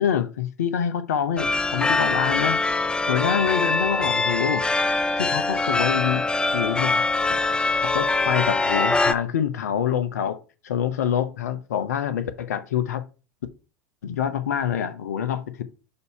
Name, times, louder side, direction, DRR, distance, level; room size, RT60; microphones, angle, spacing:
voice 1, 0.0-2.6 3.1-4.7 5.2-6.3 6.5-7.0 7.3-7.4 7.8-10.4 10.6-13.0 14.0-15.6, left 9 dB, 75° left, 0.7 m, -26 dB
sound 1, 1.4-9.1, left 3 dB, 10° left, 0.4 m, -23 dB
6.7 x 2.7 x 5.5 m
hypercardioid pair, 85°, 9 cm